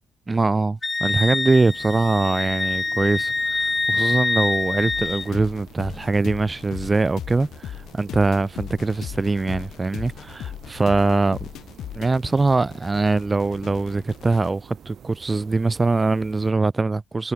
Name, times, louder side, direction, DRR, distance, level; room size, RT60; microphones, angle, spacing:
voice 1, 0.3-11.5 11.9-17.3, right 3 dB, 25° right, 1.6 m, -22 dB
Wind instrument woodwind instrument, 0.8-5.3, left 3 dB, 25° left, 1.4 m, -25 dB
sound 1, 1.5-16.5, right 8 dB, 60° right, 3.9 m, -48 dB
sound 2, 4.9-14.5, left 11 dB, 75° left, 0.9 m, -38 dB
cardioid pair, 90°, 0 cm